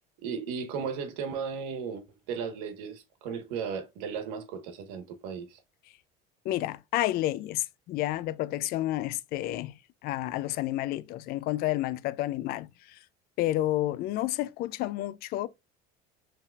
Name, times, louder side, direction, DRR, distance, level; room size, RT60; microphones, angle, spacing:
voice 1, 0.2-5.6, right 6 dB, 90° right, 1.2 m, -35 dB
voice 2, 6.4-9.8 10.0-13.0 13.4-15.5, left 15 dB, 50° left, 0.4 m, -30 dB
5.5 x 3.4 x 2.3 m
cardioid pair, 135°, 20 cm